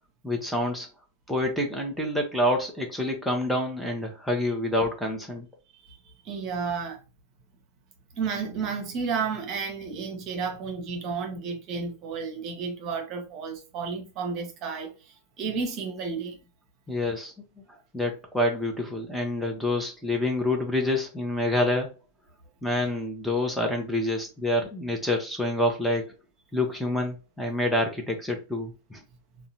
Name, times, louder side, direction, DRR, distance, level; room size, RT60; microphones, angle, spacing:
voice 1, 0.2-0.9 1.3-5.5 16.9-17.3 17.9-21.9 22.6-26.1 26.5-29.0, left 1 dB, ahead, 0.7 m, -27 dB
voice 2, 6.2-7.0 8.2-16.4, right 5 dB, 40° right, 0.8 m, -32 dB
3.7 x 2.2 x 2.7 m
figure-of-eight pair, 90°, 0 cm